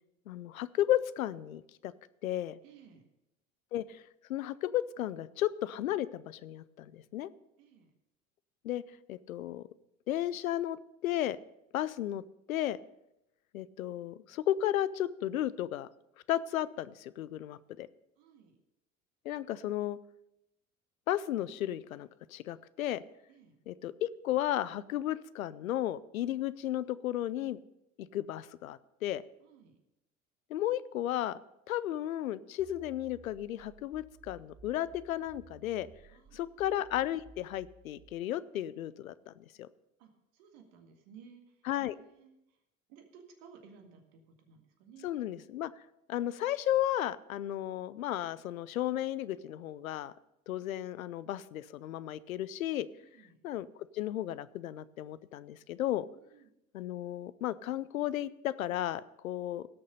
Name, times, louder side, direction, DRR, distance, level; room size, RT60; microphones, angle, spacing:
voice 1, 0.3-1.9 2.2-2.6 3.7-4.0 4.3-7.3 8.6-8.8 9.1-9.6 10.1-11.4 11.7-12.2 12.5-12.8 13.5-15.9 16.3-17.9 19.3-20.0 21.1-23.0 23.7-27.6 28.0-29.2 30.5-31.4 31.7-35.9 36.3-39.7 41.7-42.0 45.0-45.7 46.1-50.1 50.5-52.9 53.4-53.7 53.9-56.1 56.7-59.7, left 12 dB, 85° left, 18 dB, 0.5 m, -34 dB
voice 2, 2.6-3.0 7.6-7.9 18.2-18.6 23.3-23.6 29.4-29.8 36.1-36.7 40.0-42.6 42.9-45.1 53.0-53.4 56.2-56.5, right 6 dB, 70° right, 4 dB, 2.0 m, -57 dB
sound 1, 32.6-38.1, right 3 dB, 20° right, 1.5 m, -57 dB
17.0 x 6.7 x 5.4 m, 0.87 s
hypercardioid pair, 65°, 40 cm